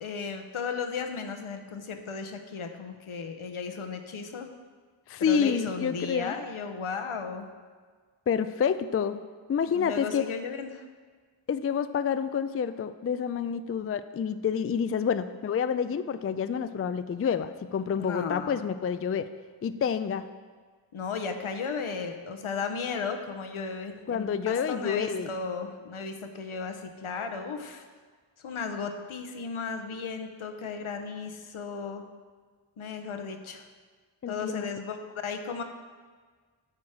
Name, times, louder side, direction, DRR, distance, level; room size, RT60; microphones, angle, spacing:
voice 1, 0.0-4.5 5.2-7.5 9.7-10.9 18.0-18.6 20.9-27.8 28.4-32.0 32.8-33.7 34.3-35.0 35.2-35.6, left 5 dB, 75° left, 5 dB, 0.9 m, -35 dB
voice 2, 5.1-6.3 8.3-9.2 9.5-10.2 11.5-19.3 19.6-20.2 24.1-25.3 34.2-34.7, left 7 dB, 30° left, 11 dB, 0.4 m, -28 dB
8.7 x 6.2 x 4.9 m, 1.5 s
cardioid pair, 45°, 50 cm